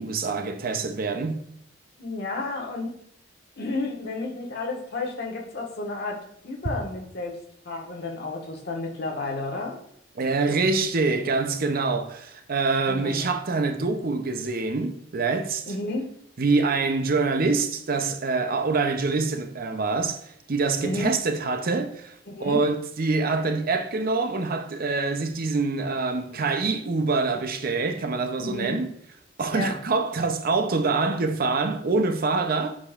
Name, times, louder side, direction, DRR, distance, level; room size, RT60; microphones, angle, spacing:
voice 1, 0.0-1.5 10.2-15.7 16.4-28.9 29.4-32.8, right 3 dB, 50° right, 0.6 m, -25 dB
voice 2, 2.0-3.0 3.6-6.2 6.4-7.4 7.6-9.8 12.9-13.4 15.7-16.1 20.8-21.1 22.3-22.6 28.4-28.8 29.5-29.8, left 2 dB, 60° left, 1.5 m, -31 dB
8.2 x 5.2 x 2.4 m
head